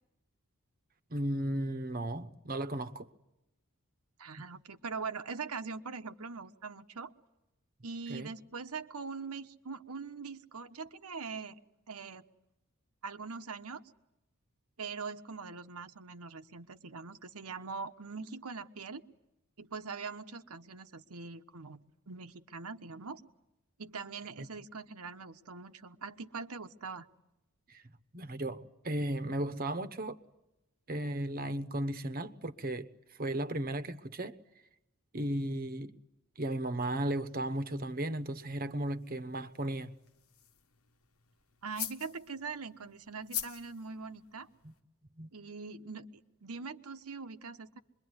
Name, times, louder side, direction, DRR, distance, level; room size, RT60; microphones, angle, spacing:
voice 1, 1.1-3.1 8.1-8.3 24.4-24.5 27.7-27.8 28.1-30.2 30.9-32.9 33.2-34.4 35.1-36.0 36.4-39.9 44.6-44.7 45.2-45.3, right 1 dB, 40° right, 1.0 m, -35 dB
voice 2, 4.2-7.1 7.8-11.6 11.9-12.2 13.0-13.8 14.8-19.0 19.6-21.8 22.1-23.2 23.8-27.1 41.6-44.5 45.3-46.1 46.4-47.8, right 4 dB, 85° right, 1.2 m, -42 dB
sound 1, 36.9-44.8, left 10 dB, 70° left, 1.3 m, -46 dB
26.5 x 22.5 x 9.7 m
head